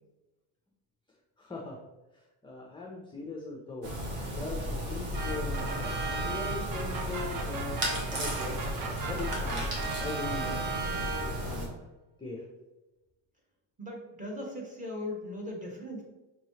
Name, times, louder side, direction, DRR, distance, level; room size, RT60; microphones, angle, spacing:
voice 1, 1.4-1.8 2.4-3.9 4.4-8.6 9.1-9.7 10.0-10.6 11.4-11.7 12.2-12.4, left 2 dB, 10° left, -1 dB, 0.4 m, -40 dB
sound 1, 3.8-11.7, equal, 65° right, 1.3 m, -34 dB
sound 2, 5.1-11.7, right 4 dB, 45° right, 0.6 m, -37 dB
voice 2, 13.8-16.0, left 1 dB, 15° right, -1 dB, 1.0 m, -38 dB
5.5 x 3.0 x 2.8 m, 1.1 s
cardioid pair, 140°, 45 cm